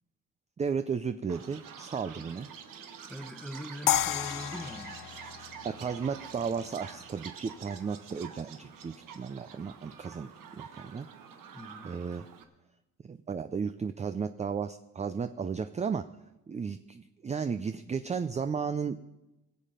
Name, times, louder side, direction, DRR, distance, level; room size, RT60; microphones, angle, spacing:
voice 1, 0.6-2.5 5.6-11.1 11.8-12.3 13.0-16.1 16.5-19.0, right 6 dB, 20° right, 11 dB, 0.4 m, -34 dB
Chirp tweet, 1.3-12.4, right 7 dB, 80° right, 1.4 m, -47 dB
voice 2, 3.1-5.0 11.5-12.0, equal, ahead, 8 dB, 1.0 m, -42 dB
sound 1, 3.9-6.9, left 12 dB, 85° left, 0.6 m, -32 dB
21.5 x 7.5 x 5.1 m, 1.0 s
cardioid pair, 115°, 33 cm